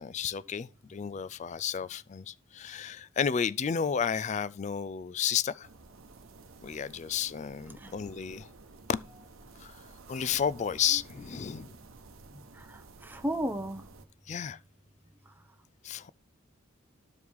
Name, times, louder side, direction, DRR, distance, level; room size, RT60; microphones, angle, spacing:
voice 1, 0.0-5.7 6.6-8.5 8.9-9.0 9.6-9.8 10.1-11.8 14.3-14.6 15.8-16.1, left 7 dB, 35° left, 0.3 m, -32 dB
sound 1, 5.6-14.1, right 3 dB, 80° right, 0.9 m, -53 dB
voice 2, 12.5-13.8, right 1 dB, 10° right, 0.6 m, -34 dB
12.5 x 4.7 x 3.5 m
head